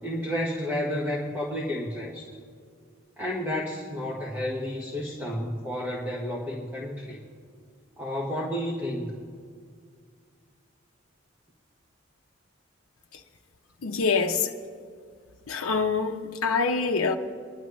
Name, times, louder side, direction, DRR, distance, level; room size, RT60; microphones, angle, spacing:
voice 1, 0.0-2.3 3.2-7.2 8.0-9.1, left 1 dB, 10° right, 1.2 m, -31 dB
voice 2, 13.8-14.6 15.5-17.1, left 4 dB, 85° left, 0.7 m, -25 dB
25.0 x 11.0 x 3.1 m
head